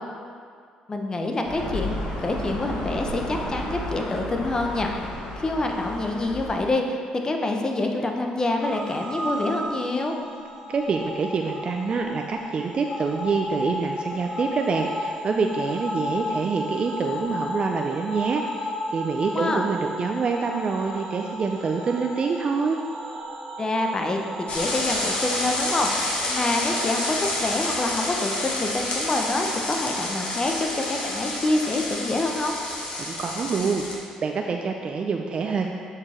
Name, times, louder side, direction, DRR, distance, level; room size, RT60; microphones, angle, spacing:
voice 1, 0.9-10.1 19.3-19.6 23.6-32.5, left 2 dB, 30° left, 3 dB, 0.9 m, -26 dB
sound 1, 1.4-6.7, left 1 dB, 85° left, 1.8 m, -33 dB
sound 2, 8.6-28.1, left 1 dB, 25° right, 1.6 m, -34 dB
voice 2, 10.7-22.8 33.0-35.7, right 5 dB, 45° right, 3 dB, 0.5 m, -26 dB
sound 3, 24.5-33.9, left 2 dB, 55° left, 1.5 m, -29 dB
6.8 x 4.7 x 4.3 m, 2.1 s
supercardioid pair, 65°, 2 cm